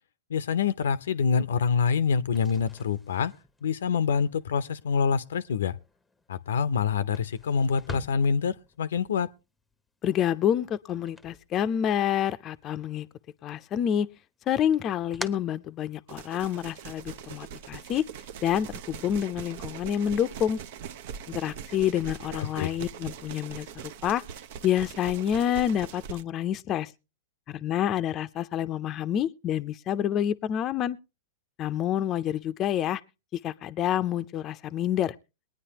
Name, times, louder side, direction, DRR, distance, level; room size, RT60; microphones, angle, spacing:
voice 1, 0.3-3.3 3.6-5.8 6.3-9.3 22.3-22.7, left 6 dB, 80° left, 0.6 m, -26 dB
sound 1, 2.3-12.2 12.5-13.4 13.8-16.4, left 2 dB, 5° left, 0.8 m, -46 dB
voice 2, 10.0-13.1 13.4-14.1 14.5-18.0 18.4-20.6 21.3-24.2 24.6-26.9 27.5-31.0 31.6-33.0 33.3-35.1, left 10 dB, 35° left, 0.5 m, -28 dB
sound 2, 16.1-26.2, right 8 dB, 60° right, 0.6 m, -42 dB
22.0 x 9.6 x 2.9 m
hypercardioid pair, 115°, 0 cm